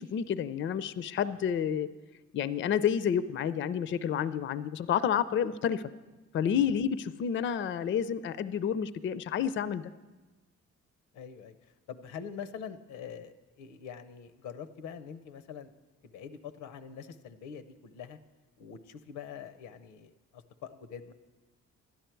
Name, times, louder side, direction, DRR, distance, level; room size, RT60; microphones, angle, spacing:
voice 1, 0.0-1.9 2.3-5.8 6.3-9.9, left 8 dB, 40° left, 16 dB, 0.4 m, -30 dB
voice 2, 11.1-15.7 16.0-18.2 18.6-21.1, left 7 dB, 90° left, 12 dB, 0.7 m, -44 dB
12.0 x 10.5 x 4.5 m, 1.2 s
cardioid pair, 90°, 30 cm